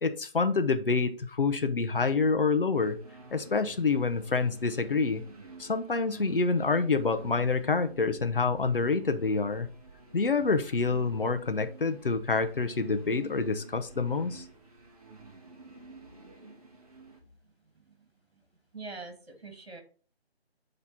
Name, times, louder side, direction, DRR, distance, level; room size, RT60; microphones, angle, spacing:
voice 1, 0.0-3.0 3.3-5.2 5.6-9.7 10.1-14.4, left 4 dB, 55° left, 0.9 m, -27 dB
sound 1, 2.7-17.2, right 3 dB, 35° right, 1.7 m, -50 dB
voice 2, 18.7-19.8, right 3 dB, 70° right, 2.1 m, -43 dB
8.7 x 3.3 x 4.3 m
figure-of-eight pair, 160°, 32 cm